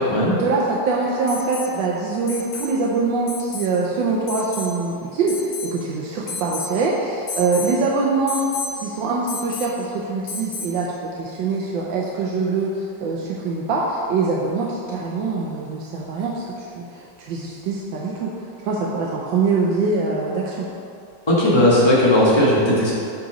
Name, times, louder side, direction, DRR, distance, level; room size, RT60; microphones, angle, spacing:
voice 1, 0.3-10.9 11.2-20.7, right 3 dB, 75° right, -4 dB, 1.4 m, -24 dB
Alarm, 1.3-1.7 2.3-2.7 3.3-3.7 4.3-4.7 5.3-5.8 6.3-6.8 7.3-7.7 8.3-8.7 9.3-9.8 10.3-10.8 12.5-12.6, left 4 dB, 60° left, 1.2 m, -32 dB
voice 2, 21.3-22.9, left 1 dB, 15° left, -8 dB, 1.2 m, -16 dB
7.6 x 4.1 x 4.9 m, 2.4 s
omnidirectional pair, 2.1 m